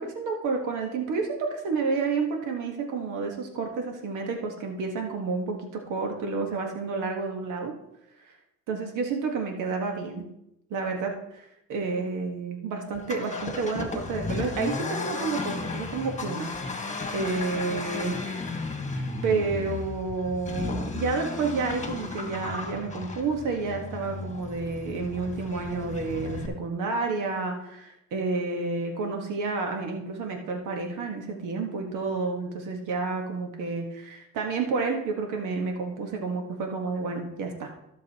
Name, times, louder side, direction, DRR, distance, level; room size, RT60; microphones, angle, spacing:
voice 1, 0.0-7.7 8.7-10.3 10.7-16.5 17.1-18.4 18.9-37.7, right 4 dB, 85° right, 2 dB, 1.5 m, -30 dB
Accelerating revving vroom, 12.9-26.5, left 3 dB, 25° left, 1.7 m, -34 dB
15.5 x 6.5 x 3.0 m, 0.82 s
cardioid pair, 90°, 30 cm